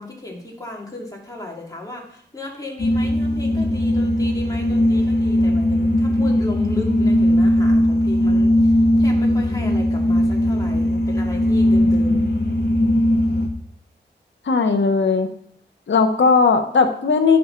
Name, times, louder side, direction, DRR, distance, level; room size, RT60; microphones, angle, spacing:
voice 1, 0.0-12.2, left 2 dB, 20° left, -1 dB, 2.3 m, -35 dB
sound 1, 2.8-13.5, left 1 dB, 60° left, 1.3 m, -18 dB
voice 2, 14.5-15.3 15.9-17.4, left 4 dB, 80° left, 6 dB, 0.9 m, -17 dB
12.5 x 5.9 x 3.8 m, 0.67 s
cardioid pair, 55°, 19 cm